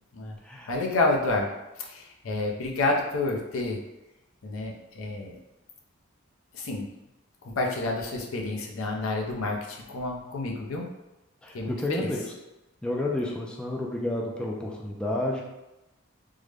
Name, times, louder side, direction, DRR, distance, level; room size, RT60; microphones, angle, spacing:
voice 1, 0.7-1.5 1.8-3.8 4.4-5.4 6.5-6.9 7.4-10.9 11.5-12.1, left 2 dB, 75° left, 1 dB, 0.6 m, -29 dB
voice 2, 11.4-12.2 12.8-15.4, left 1 dB, 5° left, -2 dB, 0.3 m, -30 dB
3.6 x 2.1 x 3.2 m, 0.99 s
head